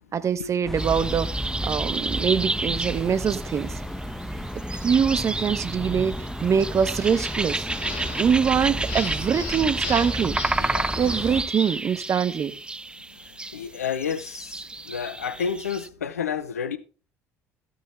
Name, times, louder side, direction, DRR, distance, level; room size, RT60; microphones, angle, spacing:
voice 1, 0.1-3.7 4.7-7.7 8.2-10.4 11.0-12.5, right 7 dB, 40° right, 1.2 m, -24 dB
sound 1, 0.7-11.4, equal, 5° left, 1.6 m, -33 dB
sound 2, 0.8-15.9, right 2 dB, 10° right, 0.5 m, -31 dB
sound 3, 7.0-11.8, left 5 dB, 70° left, 3.2 m, -39 dB
voice 2, 10.6-10.9 13.2-16.8, left 7 dB, 90° left, 0.8 m, -31 dB
14.5 x 8.7 x 3.4 m
hypercardioid pair, 60°, 8 cm